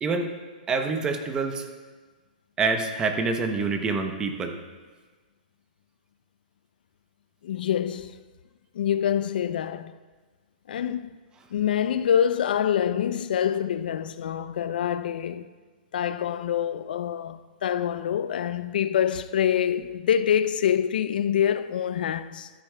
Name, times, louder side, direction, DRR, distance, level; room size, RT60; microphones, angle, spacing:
voice 1, 0.7-1.7 2.6-4.5, right 4 dB, 15° right, 0.7 m, -26 dB
voice 2, 7.4-8.2 8.7-9.9 10.7-11.1 11.5-15.5 15.9-22.5, left 9 dB, 70° left, 0.5 m, -26 dB
13.0 x 10.0 x 2.2 m
hypercardioid pair, 155°, 5 cm